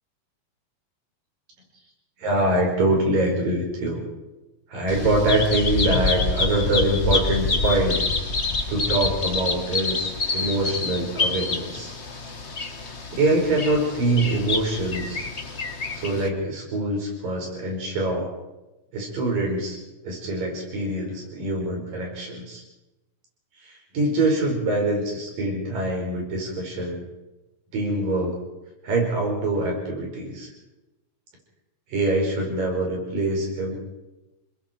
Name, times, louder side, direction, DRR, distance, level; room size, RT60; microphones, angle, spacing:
voice 1, 2.2-4.0 4.7-8.0 8.7-11.9 13.1-15.2 15.9-18.3 18.9-19.8 20.0-22.6 23.6-27.0 27.7-28.4 28.8-30.5 31.9-33.8, right 2 dB, 90° right, 0 dB, 6.8 m, -24 dB
Bird vocalization bird call bird song, 4.9-16.3, left 3 dB, 40° left, 1.0 m, -27 dB
29.0 x 21.0 x 4.6 m, 1.0 s
omnidirectional pair, 3.8 m